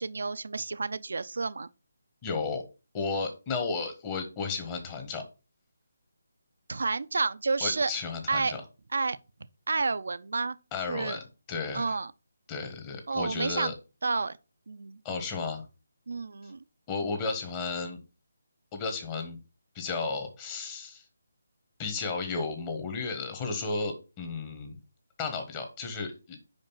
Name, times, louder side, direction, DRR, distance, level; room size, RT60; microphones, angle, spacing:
voice 1, 0.0-1.7 6.7-7.9 8.3-8.6 8.9-9.2 9.7-11.2 11.7-12.1 13.1-13.7 14.0-14.4 14.7-15.0 16.1-16.6, right 4 dB, 70° right, 0.5 m, -30 dB
voice 2, 2.2-2.6 2.9-5.2 7.6-8.6 10.7-12.0 12.5-13.7 15.0-15.6 16.9-18.0 18.7-19.4 19.7-21.0 21.8-24.8 25.2-26.4, left 4 dB, 20° left, 1.3 m, -33 dB
5.2 x 5.1 x 5.6 m
figure-of-eight pair, 165°, 0 cm